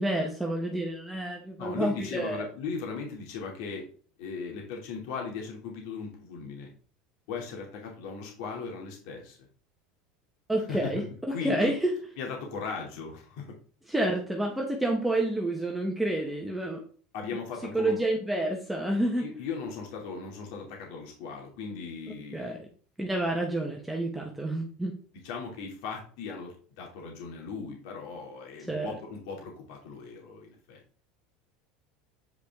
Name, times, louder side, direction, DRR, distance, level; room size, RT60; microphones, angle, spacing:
voice 1, 0.0-2.5 10.5-11.9 13.9-16.8 17.7-19.3 22.3-22.6 23.0-25.0 28.7-28.9, right 1 dB, 5° right, 0 dB, 0.9 m, -29 dB
voice 2, 1.6-3.9 4.2-6.7 7.3-9.4 10.6-11.7 12.2-13.6 17.1-18.0 19.2-22.6 23.0-23.1 25.2-30.8, left 5 dB, 65° left, 1 dB, 2.5 m, -38 dB
8.3 x 5.0 x 3.5 m, 0.43 s
supercardioid pair, 150°, 2 cm